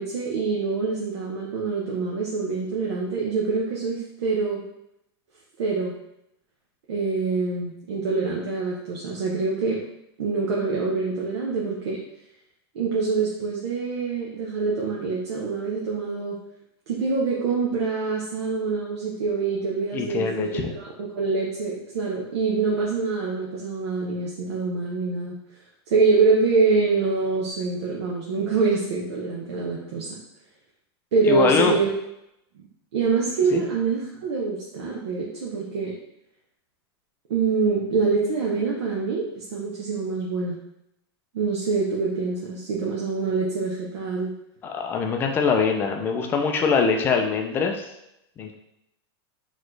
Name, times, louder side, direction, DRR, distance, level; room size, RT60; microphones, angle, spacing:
voice 1, 0.0-4.6 5.6-5.9 6.9-9.8 10.2-12.0 12.7-16.4 16.9-20.9 21.1-25.3 25.9-30.1 31.1-31.9 32.6-32.7 32.9-35.9 37.3-40.6 41.3-44.3, right 4 dB, 80° right, -3 dB, 0.9 m, -25 dB
voice 2, 19.9-20.7 31.2-31.8 33.5-33.6 44.6-47.9 48.4-48.5, left 5 dB, 15° left, 3 dB, 0.3 m, -23 dB
4.1 x 3.1 x 3.2 m, 0.82 s
supercardioid pair, 165°, 14 cm